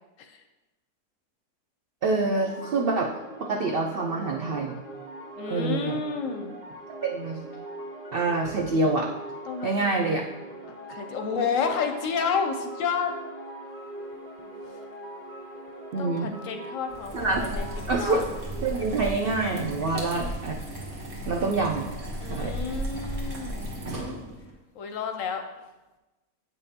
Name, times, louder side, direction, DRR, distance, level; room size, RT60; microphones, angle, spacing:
voice 1, 2.0-3.1 3.4-4.8 5.5-6.0 7.0-7.4 8.1-9.1 9.6-10.2 15.9-16.3 17.1-18.2 18.6-20.5 21.3-21.9 22.3-22.5, right 3 dB, 80° right, 1 dB, 0.5 m, -26 dB
sound 1, 2.3-19.1, right 1 dB, 25° right, 1.6 m, -41 dB
voice 2, 5.4-6.5 9.5-9.9 10.9-13.1 14.7-14.8 16.0-17.7 18.0-18.2 19.9-20.1 22.2-23.7 24.7-25.4, left 6 dB, 65° left, 5 dB, 0.9 m, -30 dB
sound 2, 16.9-24.5, equal, 60° right, 1.6 m, -35 dB
8.1 x 5.4 x 2.8 m, 1.1 s
omnidirectional pair, 1.6 m